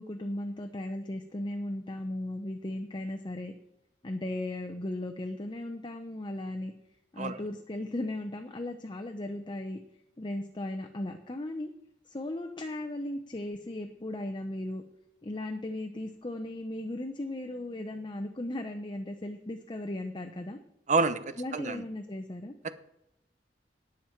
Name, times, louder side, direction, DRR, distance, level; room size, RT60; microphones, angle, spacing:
voice 1, 0.0-3.5 4.0-6.7 7.1-9.8 10.2-11.7 12.1-14.8 15.2-20.6 21.4-22.5, left 1 dB, 25° left, 5 dB, 0.8 m, -36 dB
voice 2, 20.9-21.8 22.6-22.7, right 3 dB, 45° right, 12 dB, 0.8 m, -28 dB
18.0 x 7.3 x 4.6 m, 0.83 s
head